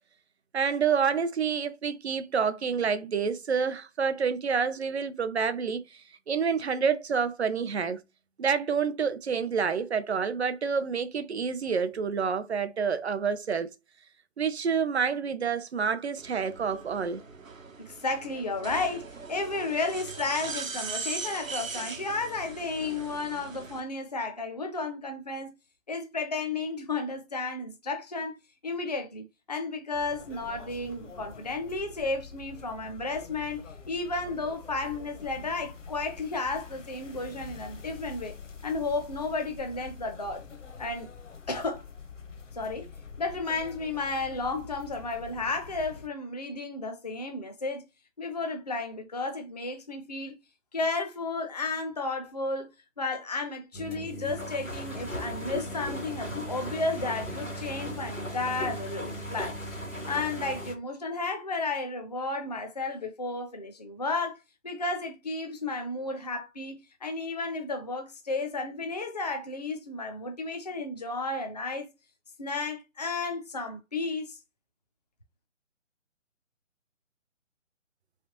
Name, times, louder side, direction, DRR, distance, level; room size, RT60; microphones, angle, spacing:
voice 1, 0.5-6.0 6.3-8.0 8.4-13.7 14.4-17.2, right 6 dB, 60° right, 0.5 m, -28 dB
sound 1, 16.2-23.8, right 4 dB, 85° right, 0.8 m, -40 dB
voice 2, 17.8-25.5 25.9-28.4 28.6-38.3 38.6-40.4 40.8-41.1 41.5-41.8 42.5-42.9 43.2-47.8 48.2-50.4 50.7-52.7 53.0-59.6 60.1-71.9 72.4-74.4, left 3 dB, 35° left, 0.4 m, -33 dB
sound 2, 29.9-46.1, left 5 dB, 65° left, 0.8 m, -46 dB
sound 3, 53.7-60.7, equal, 90° left, 1.5 m, -37 dB
3.2 x 2.8 x 2.9 m
figure-of-eight pair, 145°, 39 cm